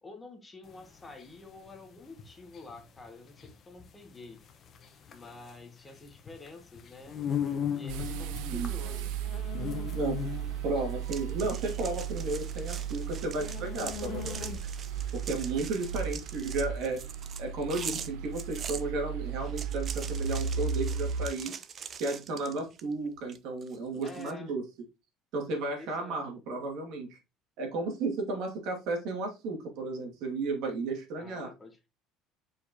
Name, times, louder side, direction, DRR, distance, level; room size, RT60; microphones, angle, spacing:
voice 1, 0.0-4.4 5.1-7.2 7.7-9.2 24.0-24.5 25.7-26.2 31.1-31.9, left 3 dB, 15° left, 5 dB, 1.0 m, -48 dB
sound 1, 0.7-14.9, left 8 dB, 35° left, 1.0 m, -39 dB
sound 2, 7.9-21.3, right 7 dB, 80° right, 0.6 m, -35 dB
voice 2, 10.6-14.6 15.1-17.0 17.4-21.5 22.0-24.6 25.3-27.2 27.6-31.5, right 3 dB, 60° right, 2 dB, 2.2 m, -33 dB
sound 3, 11.1-18.8 19.4-22.9 23.3-24.3, right 7 dB, 30° right, 0.5 m, -43 dB
6.9 x 4.9 x 2.9 m, 0.26 s
cardioid pair, 155°, 0 cm